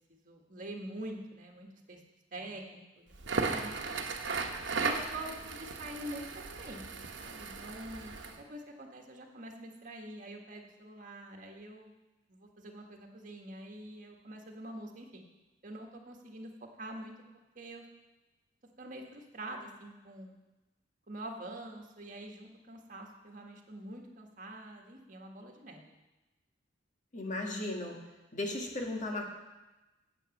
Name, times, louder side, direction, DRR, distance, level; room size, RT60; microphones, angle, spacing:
voice 1, 0.1-2.0 2.3-3.7 4.8-11.9 12.3-15.2 15.6-17.1 17.5-17.8 18.8-20.3 21.1-25.8, right 1 dB, 45° right, 2 dB, 1.5 m, -45 dB
Crackle, 3.1-8.4, right 4 dB, 75° right, 1.1 m, -36 dB
voice 2, 27.1-27.9 28.3-29.2, left 2 dB, 45° left, 1 dB, 1.7 m, -35 dB
9.0 x 8.2 x 6.5 m, 1.1 s
head